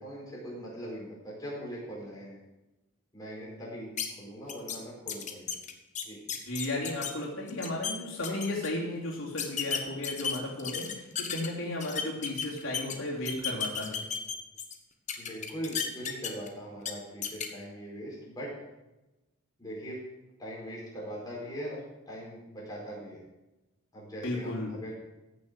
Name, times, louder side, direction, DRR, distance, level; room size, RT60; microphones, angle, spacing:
voice 1, 0.0-2.4 3.1-3.9 4.2-5.5 6.0-6.2 15.2-18.5 19.6-20.0 20.4-21.8 22.1-23.2 23.9-24.9, equal, 20° left, -5 dB, 4.8 m, -41 dB
sound 1, 4.0-4.1 4.5-4.8 5.1-7.1 7.5-7.9 8.2-8.7 9.4-11.5 11.8-12.9 13.2-14.7 15.1-16.5 16.8-16.9 17.2-17.5, left 7 dB, 35° left, 1.1 m, -33 dB
voice 2, 6.5-14.0 24.2-24.7, left 1 dB, 80° left, -4 dB, 3.2 m, -34 dB
15.0 x 6.6 x 6.4 m, 1.0 s
head